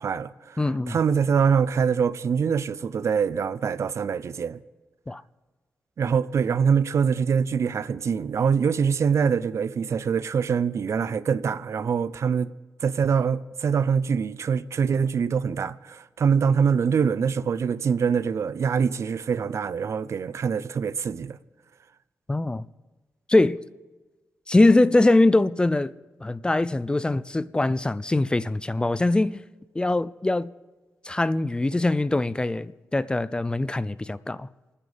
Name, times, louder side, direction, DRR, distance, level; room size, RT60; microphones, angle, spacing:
voice 1, 0.0-0.6 0.9-4.6 6.0-12.5 12.8-21.4, right 6 dB, 65° right, 0.6 m, -24 dB
voice 2, 0.6-1.0 5.1-5.2 22.3-22.6 23.3-23.6 24.5-25.9 26.2-29.4 29.8-30.5 31.1-34.5, left 2 dB, 15° left, 0.5 m, -22 dB
28.5 x 10.0 x 5.1 m
cardioid pair, 90°, 5 cm